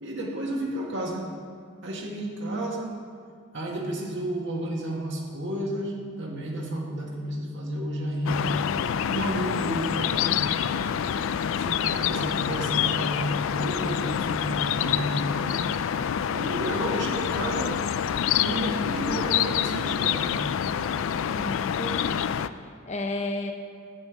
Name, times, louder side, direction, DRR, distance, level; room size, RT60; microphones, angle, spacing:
voice 1, 0.0-1.3 1.8-3.0 3.5-8.6 9.1-10.5 11.6-15.6 16.3-17.8 18.4-20.3, right 1 dB, 60° right, -1 dB, 1.9 m, -31 dB
sound 1, 8.3-22.5, left 8 dB, 65° left, 0.3 m, -27 dB
voice 2, 21.3-23.5, left 2 dB, 35° left, 3 dB, 0.9 m, -33 dB
9.8 x 5.5 x 8.1 m, 2.2 s
head